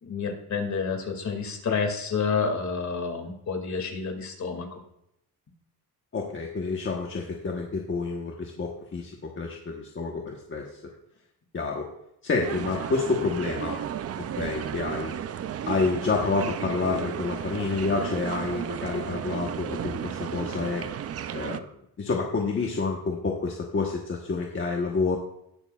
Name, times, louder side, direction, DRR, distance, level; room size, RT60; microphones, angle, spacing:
voice 1, 0.0-4.8, left 5 dB, 50° left, 3 dB, 2.3 m, -29 dB
voice 2, 6.1-10.8 11.5-11.9 12.2-13.7 14.2-15.1 15.7-20.9 21.3-21.7 22.0-25.2, left 4 dB, 30° left, 0 dB, 1.2 m, -29 dB
sound 1, 12.4-21.6, right 9 dB, 40° right, 0.5 m, -33 dB
19.0 x 6.5 x 2.4 m, 0.80 s
cardioid pair, 115°, 37 cm